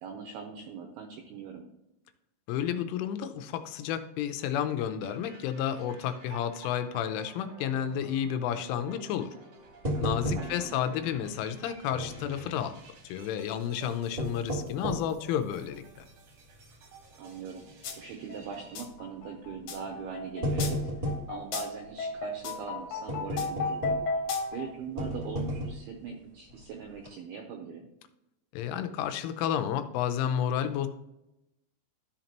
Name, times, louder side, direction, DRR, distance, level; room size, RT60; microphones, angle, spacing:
voice 1, 0.0-1.7 10.4-10.7 17.2-17.6 18.0-24.0 24.5-27.9, right 6 dB, 85° right, 3 dB, 2.2 m, -41 dB
voice 2, 2.5-9.3 10.0-12.7 13.1-16.1 28.5-30.9, left 9 dB, 85° left, 9 dB, 3.2 m, -31 dB
sound 1, 5.0-18.8, right 4 dB, 65° right, 1.8 m, -52 dB
sound 2, 9.8-10.8 11.1-11.2 11.9-12.6 13.9-15.2 15.8-15.9 16.5-16.7 17.0-17.1 18.3-18.6 19.5-19.6 20.1-21.3 23.1-24.2 25.0-25.9 26.5-26.6 26.9-27.1, equal, 10° right, 2.1 m, -33 dB
sound 3, 17.8-18.0 18.3-24.7, left 3 dB, 70° left, 2.8 m, -34 dB
13.0 x 5.2 x 3.0 m, 0.88 s
omnidirectional pair, 5.5 m